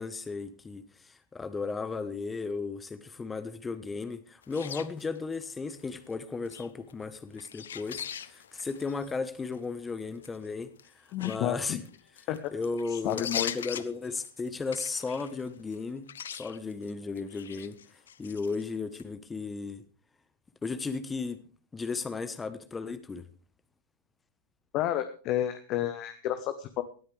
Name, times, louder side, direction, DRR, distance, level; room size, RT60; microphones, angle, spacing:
voice 1, 0.0-11.8 12.5-19.8 20.6-21.4 21.7-23.2, left 4 dB, 15° left, 1.1 m, -35 dB
sound 1, 4.4-5.4 5.7-6.1 6.4-9.1 9.5-9.6 10.2-10.5 10.8-15.8 16.1-16.9 17.2-18.6 18.9-19.0, left 9 dB, 65° left, 0.8 m, -40 dB
voice 2, 11.1-11.8 12.3-12.5 13.0-13.5 24.7-26.8, left 12 dB, 40° left, 1.1 m, -30 dB
19.0 x 13.0 x 3.3 m
figure-of-eight pair, 90°, 0 cm